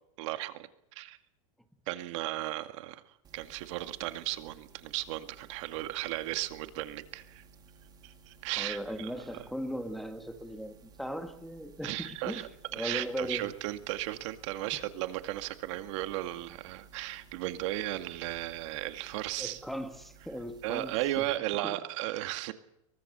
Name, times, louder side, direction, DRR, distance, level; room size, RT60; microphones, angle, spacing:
voice 1, 0.2-1.2 1.9-7.4 8.0-9.1 11.8-19.6 20.6-22.5, right 16 dB, 60° right, 2.1 m, -35 dB
sound 1, 3.2-21.4, right 5 dB, 25° right, 3.3 m, -57 dB
voice 2, 8.6-12.5 12.7-13.5 19.4-21.3 21.6-21.8, equal, ahead, 1.9 m, -38 dB
23.5 x 23.0 x 6.9 m
supercardioid pair, 145°, 17 cm